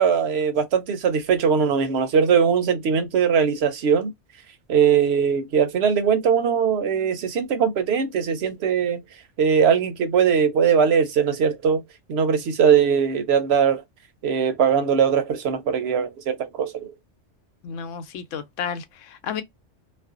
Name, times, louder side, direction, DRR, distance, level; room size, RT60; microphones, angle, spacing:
voice 1, 0.0-4.1 4.7-9.0 9.4-11.8 12.1-13.8 14.2-16.9, right 7 dB, 70° right, 0.8 m, -20 dB
voice 2, 17.6-19.4, left 7 dB, 90° left, 0.9 m, -32 dB
2.5 x 2.1 x 2.4 m
omnidirectional pair, 1.2 m